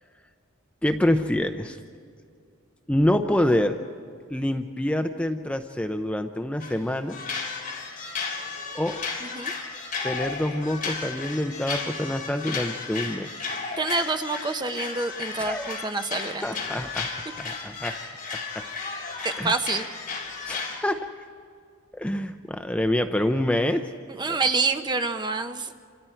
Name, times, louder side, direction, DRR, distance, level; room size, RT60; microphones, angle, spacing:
voice 1, 0.8-1.8 2.9-3.8 4.3-7.2 8.7-9.0 10.0-13.3 15.4-15.9 16.4-17.1 17.3-18.0 18.6-18.7 19.4-19.6 20.5-21.1 21.9-23.8 24.3-24.4, left 1 dB, 5° left, 6 dB, 0.6 m, -26 dB
sound 1, 6.6-6.8 7.1-20.8, left 4 dB, 40° left, 3.6 m, -34 dB
voice 2, 9.2-9.5 13.8-16.5 19.2-19.8 24.2-25.7, right 3 dB, 20° right, 7 dB, 0.8 m, -27 dB
28.5 x 27.0 x 4.5 m, 2.2 s
head